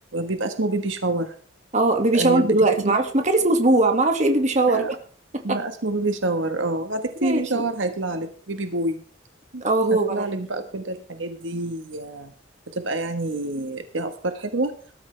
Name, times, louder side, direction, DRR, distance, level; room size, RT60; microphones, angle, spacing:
voice 1, 0.1-1.3 2.1-2.5 2.8-3.0 4.7-4.9 5.4-9.0 9.5-9.6 9.9-12.3 12.7-14.7, right 2 dB, 70° right, 7 dB, 1.4 m, -27 dB
voice 2, 1.7-4.9 5.5-5.6 7.2-7.6 9.6-10.2, right 2 dB, 35° right, 5 dB, 2.1 m, -20 dB
19.5 x 12.5 x 3.4 m, 0.43 s
head